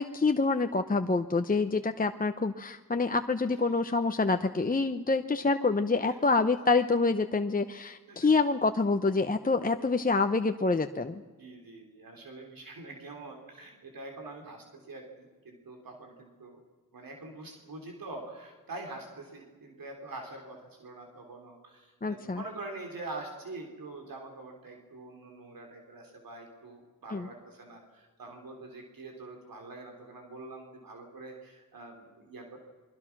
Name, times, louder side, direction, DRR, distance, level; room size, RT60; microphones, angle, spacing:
voice 1, 0.0-11.2 22.0-22.4 27.1-27.3, left 3 dB, 25° left, 7 dB, 0.8 m, -27 dB
voice 2, 11.4-16.6 16.9-32.6, right 2 dB, 90° right, 3 dB, 3.7 m, -45 dB
28.5 x 22.5 x 6.1 m, 1.3 s
wide cardioid pair, 80°, 34 cm